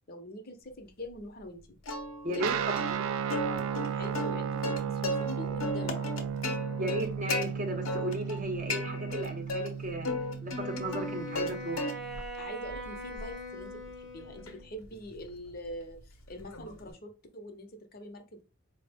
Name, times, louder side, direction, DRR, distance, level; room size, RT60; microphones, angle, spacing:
voice 1, 0.1-1.8 2.3-3.0 3.9-6.1 12.4-18.4, left 1 dB, 45° left, 0.6 m, -44 dB
Plucked string instrument, 1.9-2.5 2.8-2.9 3.3-5.3 5.6-7.5 7.9-8.4 8.7-9.7 10.0-11.5 11.8-12.3 12.7-16.9, left 2 dB, 75° left, 0.7 m, -35 dB
voice 2, 2.2-3.1 6.8-10.1 10.4-11.9, right 1 dB, 35° right, 0.7 m, -35 dB
Guitar, 2.4-12.2, right 7 dB, 70° right, 0.3 m, -35 dB
Wind instrument woodwind instrument, 10.5-14.7, left 1 dB, 5° right, 0.7 m, -41 dB
4.4 x 2.0 x 3.4 m
head